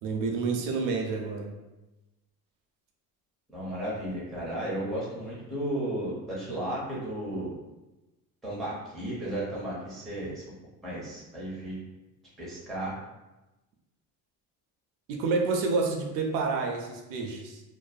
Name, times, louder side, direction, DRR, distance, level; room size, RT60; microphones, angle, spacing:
voice 1, 0.0-1.5 15.1-17.6, right 4 dB, 65° right, 2 dB, 0.5 m, -29 dB
voice 2, 3.5-7.5 8.4-10.4 10.8-11.8 12.4-13.0, right 1 dB, ahead, -8 dB, 0.4 m, -34 dB
2.6 x 2.1 x 2.3 m, 1.0 s
cardioid pair, 175°, 36 cm